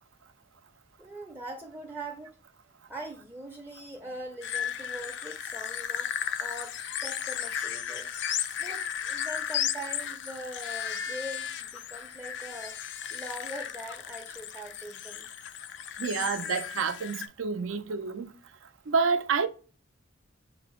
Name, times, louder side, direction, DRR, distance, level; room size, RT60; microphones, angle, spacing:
voice 1, 1.0-2.4 2.9-6.1 6.4-8.2 8.6-12.8 13.1-15.3, right 1 dB, 10° right, 0.4 m, -42 dB
sound 1, 4.4-17.3, left 9 dB, 60° left, 0.3 m, -35 dB
voice 2, 16.0-18.3 18.9-19.5, right 5 dB, 85° right, 0.5 m, -28 dB
5.2 x 2.0 x 2.9 m
head